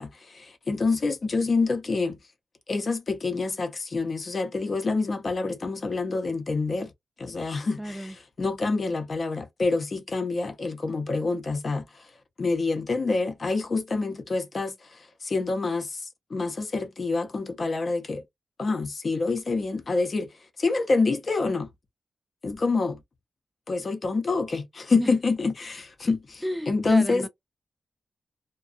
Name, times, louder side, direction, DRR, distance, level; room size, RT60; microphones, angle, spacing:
voice 1, 0.0-2.2 2.7-6.9 7.2-11.8 12.4-16.0 16.3-18.2 18.6-20.3 20.6-21.7 22.4-23.0 23.7-27.3, left 3 dB, 45° left, 0.7 m, -27 dB
voice 2, 7.8-8.1 24.9-25.1 26.4-27.3, equal, 5° right, 0.3 m, -32 dB
2.4 x 2.3 x 2.5 m
wide cardioid pair, 100°, 0 cm